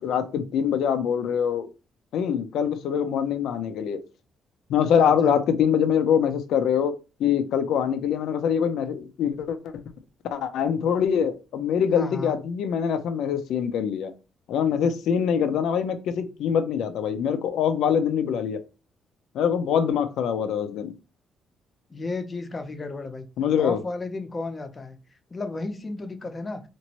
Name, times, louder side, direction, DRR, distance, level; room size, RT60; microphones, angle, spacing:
voice 1, 0.0-1.7 2.1-4.0 4.7-6.9 7.2-9.7 10.3-14.1 14.5-18.6 19.3-20.9 23.4-23.8, left 8 dB, 80° left, 9 dB, 0.5 m, -24 dB
voice 2, 4.8-5.3 11.9-12.4 21.9-23.3 23.6-25.0 25.3-26.6, left 3 dB, 30° left, 7 dB, 0.6 m, -33 dB
2.9 x 2.5 x 2.9 m, 0.31 s
cardioid pair, 90°, 0 cm